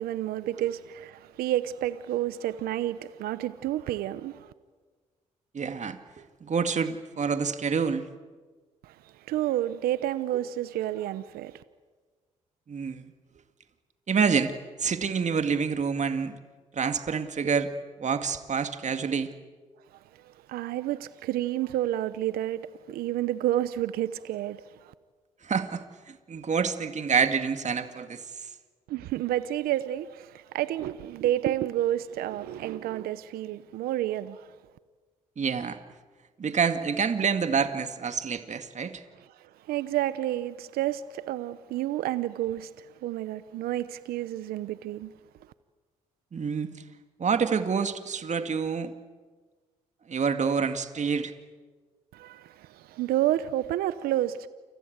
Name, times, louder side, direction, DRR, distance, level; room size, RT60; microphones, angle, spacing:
voice 1, 0.0-4.5 8.8-11.6 19.9-24.9 28.9-34.6 39.2-45.1 52.1-54.5, right 13 dB, 80° right, 0.9 m, -30 dB
voice 2, 5.5-8.1 12.7-13.0 14.1-14.5 14.8-16.3 16.7-17.7 18.0-19.3 25.4-28.2 35.4-35.8 36.4-39.0 46.3-46.7 47.2-48.9 50.1-51.3, right 6 dB, 50° right, 2.2 m, -27 dB
29.0 x 24.5 x 8.2 m
hypercardioid pair, 50°, 15 cm